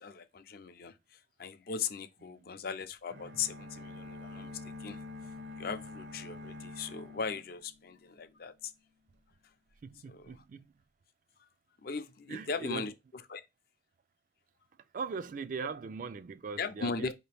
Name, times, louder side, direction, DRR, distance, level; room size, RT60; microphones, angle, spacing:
voice 1, 0.0-5.0 5.6-8.7 10.1-10.4 11.8-12.9 13.3-13.4 16.6-17.1, left 5 dB, 55° left, 0.5 m, -38 dB
voice 2, 2.2-2.6 9.8-10.7 12.3-12.9 14.9-17.1, right 5 dB, 45° right, 0.3 m, -40 dB
sound 1, 3.1-8.1, left 2 dB, 70° right, 0.9 m, -46 dB
4.7 x 2.8 x 3.3 m
head